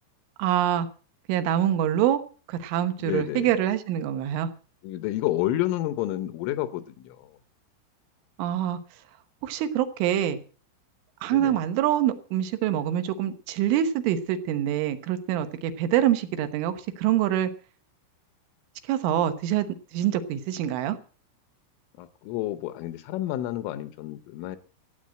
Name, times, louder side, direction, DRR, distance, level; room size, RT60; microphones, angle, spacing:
voice 1, 0.4-0.9 1.3-2.2 2.5-4.5 8.4-8.8 9.4-10.4 11.2-17.5 18.9-19.7 19.9-21.0, right 11 dB, 75° right, 10 dB, 3.5 m, -25 dB
voice 2, 3.0-3.5 4.8-7.3 11.3-11.6 22.0-24.6, left 14 dB, 80° left, 12 dB, 3.3 m, -30 dB
15.0 x 9.0 x 7.5 m, 0.39 s
omnidirectional pair, 5.9 m